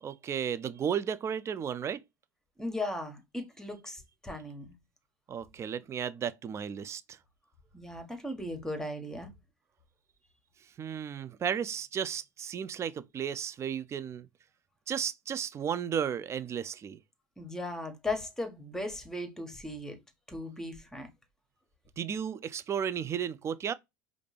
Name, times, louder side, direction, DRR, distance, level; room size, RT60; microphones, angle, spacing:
voice 1, 0.0-2.0 5.3-7.2 10.8-14.3 14.9-17.0 22.0-23.7, right 8 dB, 30° right, 0.4 m, -34 dB
voice 2, 2.6-4.7 7.7-9.3 17.4-20.0 20.3-21.1, left 2 dB, 5° left, 1.3 m, -37 dB
4.9 x 2.5 x 3.3 m
hypercardioid pair, 80°, 10 cm